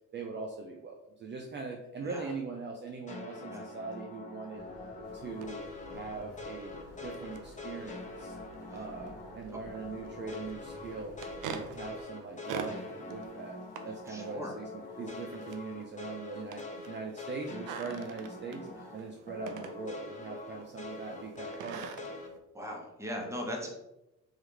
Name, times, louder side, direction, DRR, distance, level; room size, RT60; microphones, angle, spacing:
voice 1, 0.1-4.6 5.1-8.4 8.7-13.6 13.8-14.7 15.0-22.2, right 4 dB, 40° right, 1 dB, 0.5 m, -41 dB
sound 1, 3.1-9.4 9.7-19.0 19.3-22.3, left 2 dB, 25° left, 0.9 m, -44 dB
sound 2, 4.5-12.0, left 2 dB, 55° left, 1.3 m, -52 dB
sound 3, 5.0-22.4, right 6 dB, 85° right, 0.5 m, -48 dB
voice 2, 14.1-14.5 22.5-23.7, equal, 10° right, 0 dB, 1.0 m, -39 dB
3.6 x 3.1 x 3.3 m, 0.93 s
cardioid pair, 90°, 30 cm